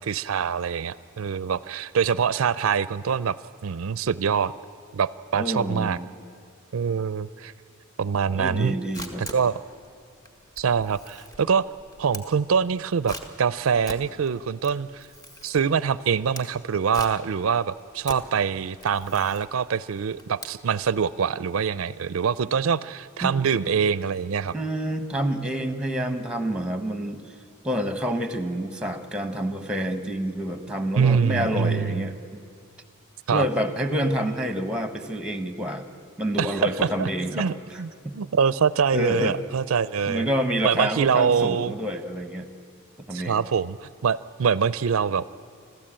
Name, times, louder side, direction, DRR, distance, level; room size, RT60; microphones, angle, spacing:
voice 1, 0.0-3.4 3.6-4.5 4.9-6.0 6.7-7.5 8.0-8.7 9.2-9.6 10.6-11.7 12.0-15.1 15.4-24.5 31.0-32.1 33.3-33.5 36.4-36.7 37.0-40.3 40.6-41.7 43.1-45.3, right 6 dB, 80° right, 17 dB, 0.5 m, -24 dB
voice 2, 5.3-6.0 8.3-9.2 23.2-23.5 24.5-27.2 27.6-32.1 33.3-35.8 36.2-38.2 38.9-39.4 40.1-42.5 43.1-43.4, equal, 5° right, 9 dB, 1.2 m, -28 dB
Camera, 8.9-21.0, equal, 20° left, 1.7 m, -43 dB
26.5 x 14.5 x 8.9 m, 2.3 s
head